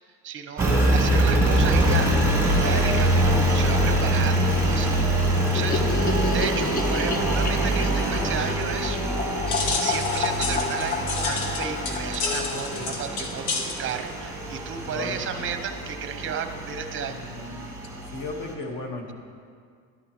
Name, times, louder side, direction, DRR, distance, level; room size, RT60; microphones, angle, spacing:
voice 1, 0.2-2.1 2.5-6.0 6.3-9.0 9.8-17.6, right 7 dB, 30° right, 8 dB, 0.7 m, -33 dB
Engine, 0.6-18.5, right 1 dB, 5° right, 1.3 m, -24 dB
voice 2, 2.5-3.1 6.3-6.4 12.5-13.0 14.9-15.2 17.0-17.8 18.1-19.1, left 3 dB, 50° left, 2 dB, 1.6 m, -36 dB
sound 1, 5.5-13.8 14.0-14.1 14.4-14.5 14.7-14.8 15.0-15.6, left 4 dB, 20° left, 0.4 m, -31 dB
sound 2, 9.5-15.2, left 4 dB, 90° left, 1.3 m, -31 dB
12.0 x 11.0 x 3.1 m, 2.1 s
cardioid pair, 130°, 42 cm